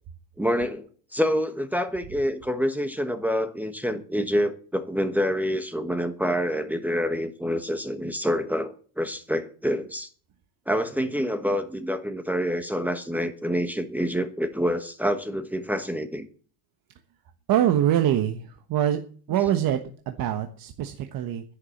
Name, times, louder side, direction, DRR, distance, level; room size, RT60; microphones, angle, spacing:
voice 1, 0.4-0.9 1.1-10.1 10.7-16.3, equal, 5° right, 1.2 m, -27 dB
voice 2, 17.5-18.4 18.7-19.0 19.3-21.4, right 11 dB, 50° right, 1.3 m, -24 dB
11.0 x 11.0 x 7.2 m
cardioid pair, 135°, 46 cm